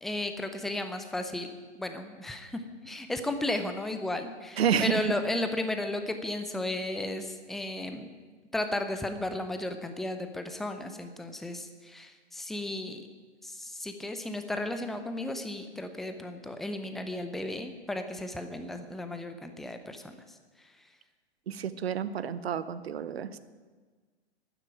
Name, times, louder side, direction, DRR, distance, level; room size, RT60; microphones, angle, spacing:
voice 1, 0.0-1.5 1.8-8.1 8.5-13.0 13.4-20.2, left 1 dB, ahead, 7 dB, 0.6 m, -34 dB
voice 2, 4.6-4.9 21.5-23.4, right 8 dB, 65° right, 14 dB, 0.9 m, -29 dB
12.0 x 9.9 x 8.8 m, 1.4 s
figure-of-eight pair, 120°, 34 cm